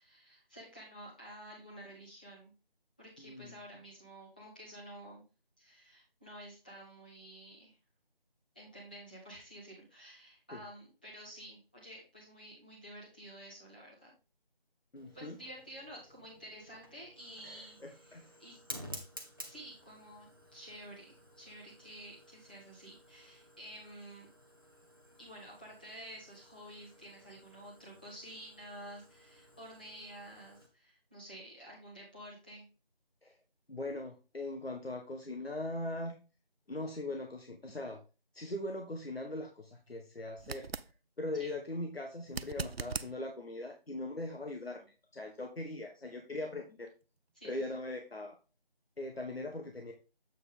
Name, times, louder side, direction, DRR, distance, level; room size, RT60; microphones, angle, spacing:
voice 1, 0.0-2.5 3.0-5.2 5.6-7.7 8.5-14.1 15.1-18.6 19.4-24.3 25.2-32.7 41.4-41.5 47.3-47.6, right 1 dB, 10° left, -6 dB, 1.3 m, -51 dB
voice 2, 3.2-3.6 10.5-10.6 14.9-15.4 17.4-18.3 33.2-33.4 33.7-36.1 36.7-38.0 38.3-40.7 41.2-44.8 45.1-46.9 47.4-48.4 49.0-49.9, left 2 dB, 80° left, 3 dB, 1.3 m, -40 dB
Fire, 15.0-30.7, equal, 25° right, 0.8 m, -53 dB
sound 1, 40.4-40.9 42.3-43.1 46.1-46.2, right 5 dB, 85° right, 0.6 m, -39 dB
7.8 x 5.0 x 3.7 m, 0.32 s
figure-of-eight pair, 170°, 30 cm